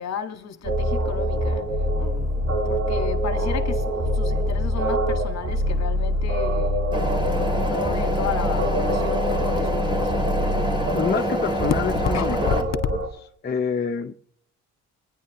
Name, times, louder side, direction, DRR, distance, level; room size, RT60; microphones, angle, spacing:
voice 1, 0.0-1.7 2.0-7.2 7.5-10.3 12.1-12.7, left 7 dB, 60° left, 1.8 m, -33 dB
sound 1, 0.6-13.1, equal, 50° right, 3.7 m, -25 dB
sound 2, 6.9-12.6, right 1 dB, 15° right, 3.1 m, -26 dB
voice 2, 10.9-12.6 13.4-14.1, left 6 dB, 30° left, 0.9 m, -26 dB
26.0 x 10.5 x 3.1 m
cardioid pair, 90°, 30 cm